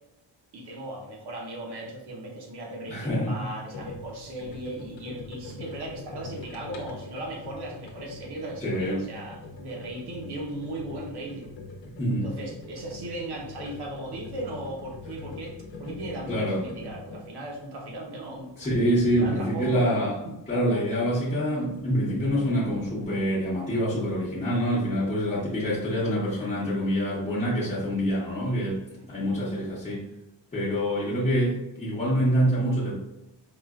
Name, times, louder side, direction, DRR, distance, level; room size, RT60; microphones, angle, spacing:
voice 1, 0.5-11.5 12.2-18.5 19.2-20.3 29.1-29.3, right 1 dB, 60° right, -1 dB, 1.0 m, -37 dB
voice 2, 2.9-3.5 8.6-9.0 12.0-12.3 16.3-16.6 18.6-20.1 20.5-28.8 29.1-30.0 30.5-32.9, equal, 15° left, -10 dB, 0.9 m, -26 dB
fan stop, 3.7-20.1 21.2-23.0, left 2 dB, 80° left, 0.9 m, -43 dB
4.9 x 2.6 x 2.3 m, 0.89 s
wide cardioid pair, 150°, 44 cm